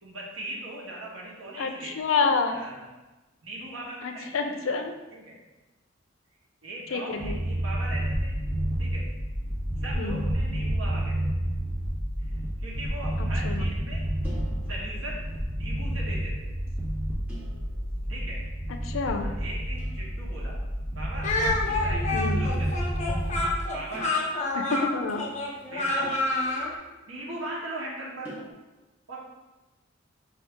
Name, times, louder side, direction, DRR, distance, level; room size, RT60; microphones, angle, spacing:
voice 1, 0.0-1.9 2.5-2.9 3.4-5.4 6.6-8.3 8.8-9.1 9.8-11.1 12.3-14.0 14.7-15.2 15.6-16.5 18.1-18.4 19.2-20.6 20.9-23.0 23.7-24.3 25.7-26.1 27.1-28.3 29.1-29.2, right 1 dB, 85° right, -4 dB, 1.4 m, -39 dB
voice 2, 1.6-2.6 4.0-4.9 6.9-7.4 10.0-10.2 13.4-13.7 18.8-19.3 22.1-22.4 24.5-25.2, left 4 dB, 75° left, 6 dB, 0.5 m, -28 dB
sound 1, 7.2-23.5, equal, 65° right, 1.5 m, -30 dB
sound 2, 14.2-15.6 17.3-18.4 19.8-20.2 21.7-22.2 23.9-25.0 26.0-27.7 28.2-28.5, right 1 dB, 10° right, 0.9 m, -48 dB
Speech, 21.2-26.7, left 2 dB, 35° left, 0.7 m, -28 dB
5.3 x 2.7 x 3.5 m, 1.1 s
head